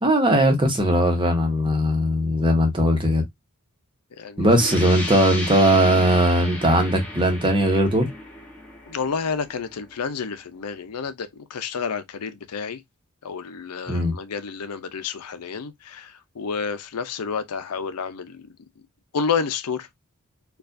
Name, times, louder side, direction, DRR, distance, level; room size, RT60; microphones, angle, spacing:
voice 1, 0.0-3.2 4.4-8.1 13.9-14.1, equal, 20° right, 0.9 m, -19 dB
voice 2, 4.2-4.5 8.9-12.8 13.2-18.5 19.1-19.9, left 5 dB, 90° left, 0.6 m, -30 dB
sound 1, 4.5-10.0, left 1 dB, 5° left, 1.0 m, -34 dB
4.5 x 2.4 x 2.6 m
head